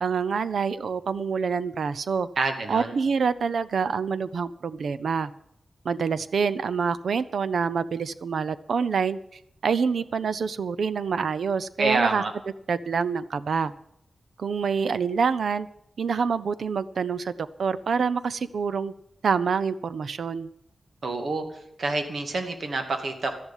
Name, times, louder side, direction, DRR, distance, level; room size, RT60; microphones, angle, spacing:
voice 1, 0.0-2.3 2.7-5.3 5.8-9.2 9.6-12.2 12.7-13.7 14.4-15.7 16.0-18.9 19.2-20.5, right 5 dB, 80° right, 15 dB, 0.7 m, -26 dB
voice 2, 2.4-2.9 11.8-12.3 21.0-21.5 21.8-23.4, right 3 dB, 65° right, 5 dB, 2.3 m, -27 dB
13.0 x 11.0 x 7.4 m, 0.74 s
wide cardioid pair, 130°, 0 cm